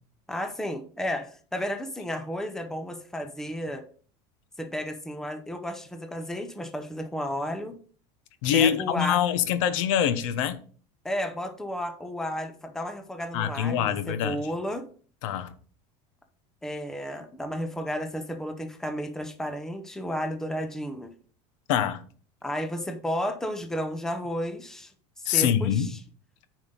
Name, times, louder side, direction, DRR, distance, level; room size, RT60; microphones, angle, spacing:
voice 1, 0.3-3.8 4.6-7.8 8.5-9.2 11.0-14.9 16.6-21.1 22.4-24.9 25.2-26.0, equal, 5° left, 0.7 m, -32 dB
voice 2, 8.4-10.6 13.3-14.4 15.2-15.5 21.7-22.0 25.2-25.9, left 9 dB, 80° left, 1.0 m, -24 dB
9.3 x 5.3 x 3.9 m
cardioid pair, 160°, 16 cm